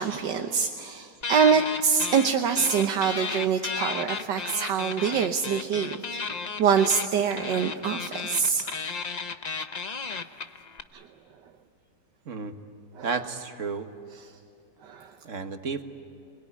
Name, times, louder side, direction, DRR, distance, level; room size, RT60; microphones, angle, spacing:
voice 1, 0.0-6.0 6.3-8.8 10.9-11.1 12.9-13.1 14.8-15.1, right 6 dB, 90° right, 5 dB, 1.7 m, -25 dB
sound 1, 1.2-2.3 2.6-10.8, left 5 dB, 35° left, 0.6 m, -33 dB
voice 2, 13.0-13.9 15.2-15.8, right 5 dB, 50° right, 7 dB, 1.7 m, -32 dB
28.5 x 21.5 x 9.8 m, 2.5 s
omnidirectional pair, 1.8 m